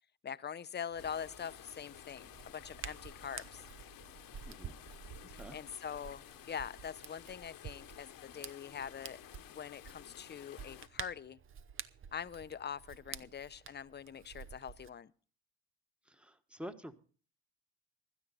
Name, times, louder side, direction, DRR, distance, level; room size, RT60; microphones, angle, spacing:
voice 1, 0.2-3.6 5.3-9.2 9.5-11.4 12.1-15.1, left 7 dB, 25° left, 0.7 m, -44 dB
Hands, 0.9-14.9, right 7 dB, 30° right, 0.8 m, -51 dB
sound 1, 1.0-10.9, left 13 dB, 60° left, 1.2 m, -54 dB
voice 2, 16.1-16.9, right 1 dB, 5° right, 1.4 m, -47 dB
16.0 x 12.5 x 4.1 m
supercardioid pair, 75°, 39 cm